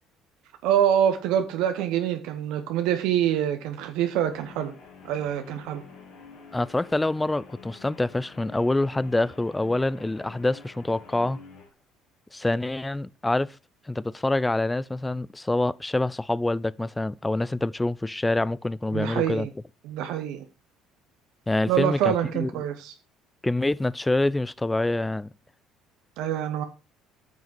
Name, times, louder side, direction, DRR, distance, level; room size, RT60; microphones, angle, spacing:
voice 1, 0.6-4.7 5.0-5.8 18.9-19.5 19.8-20.4 21.7-22.9 26.2-26.6, right 10 dB, 70° right, 0.9 m, -25 dB
Guitar, 4.3-11.7, left 5 dB, 70° left, 3.2 m, -48 dB
voice 2, 6.5-11.4 12.3-13.6 13.9-19.5 21.5-22.5 23.4-25.3, left 2 dB, 15° left, 0.4 m, -26 dB
9.5 x 5.8 x 4.4 m
hypercardioid pair, 65°, 0 cm